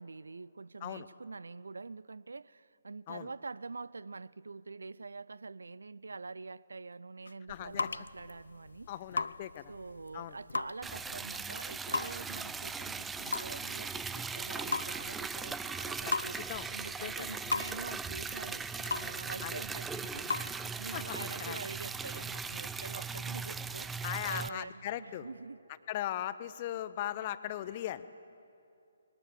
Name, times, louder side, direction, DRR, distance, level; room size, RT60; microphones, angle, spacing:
voice 1, 0.0-8.9 9.7-23.9 24.3-25.6, right 4 dB, 75° right, 0.4 m, -45 dB
sound 1, 7.2-20.8, left 4 dB, 75° left, 0.4 m, -40 dB
voice 2, 7.5-7.9 8.9-9.7 10.1-10.4 16.0-17.4 19.4-19.6 20.9-21.6 24.0-25.3 25.9-28.2, left 12 dB, 35° left, 0.8 m, -39 dB
Liquid, 10.8-24.5, right 5 dB, 10° right, 0.4 m, -39 dB
21.0 x 19.0 x 7.7 m
figure-of-eight pair, 140°, 0 cm